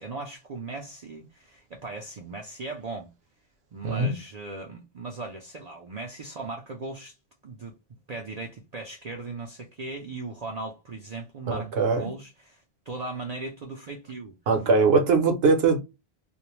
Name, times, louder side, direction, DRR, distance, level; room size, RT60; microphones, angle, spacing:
voice 1, 0.0-3.1 3.7-7.2 7.4-7.7 8.1-14.4, right 3 dB, 50° right, 0.5 m, -38 dB
voice 2, 11.5-12.1 14.5-15.8, right 4 dB, 75° right, 1.0 m, -21 dB
2.5 x 2.1 x 2.9 m
omnidirectional pair, 1.1 m